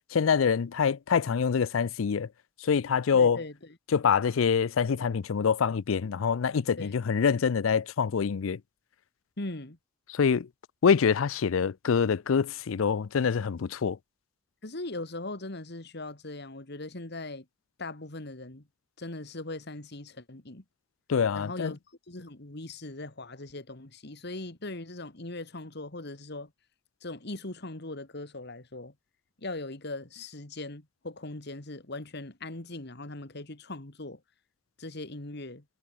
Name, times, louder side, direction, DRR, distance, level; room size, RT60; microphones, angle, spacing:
voice 1, 0.1-2.3 2.6-3.4 3.9-8.6 10.1-10.5 10.8-14.0 21.1-21.7, left 6 dB, 85° left, 0.5 m, -25 dB
voice 2, 3.1-3.7 6.8-7.0 9.4-9.8 14.6-17.4 17.8-18.6 19.0-20.6 21.3-21.8 22.1-26.5 27.0-28.9 29.4-34.2 34.8-35.6, left 2 dB, 55° left, 2.3 m, -40 dB
head